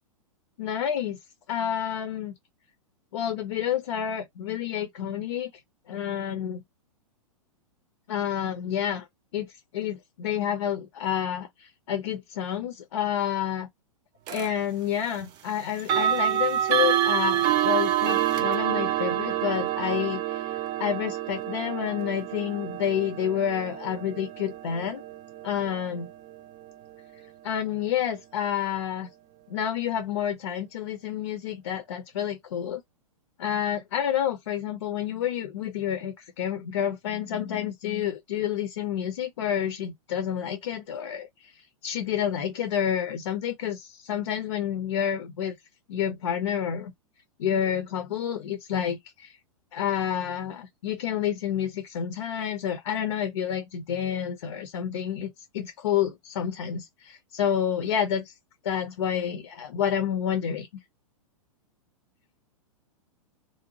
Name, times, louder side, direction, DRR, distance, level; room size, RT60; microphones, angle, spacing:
voice 1, 0.6-1.2 1.5-2.3 3.1-5.5 5.9-6.6 8.1-9.0 9.3-13.7 14.3-20.5 20.8-25.0 25.4-26.1 27.4-29.1 29.5-32.8 33.4-41.5 41.8-45.5 45.9-46.9 47.4-49.4 49.7-55.3 55.5-58.3 58.6-60.7, left 9 dB, 55° left, 0.6 m, -29 dB
sound 1, 14.3-14.5 15.8-26.7, right 11 dB, 25° right, 0.3 m, -27 dB
2.6 x 2.0 x 2.9 m
figure-of-eight pair, 105°, 18 cm